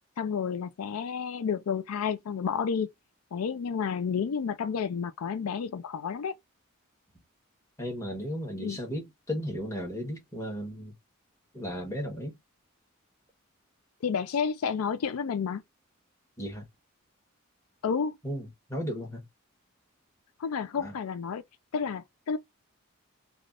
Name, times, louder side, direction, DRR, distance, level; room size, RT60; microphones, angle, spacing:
voice 1, 0.2-2.9 3.3-6.3 8.6-8.8 14.0-15.6 17.8-18.1 20.4-21.4 21.7-22.4, left 6 dB, 90° left, 0.4 m, -30 dB
voice 2, 7.8-10.9 11.5-12.4 16.4-16.6 18.2-19.2 20.7-21.0, equal, 15° left, 1.2 m, -35 dB
3.2 x 2.4 x 2.5 m
head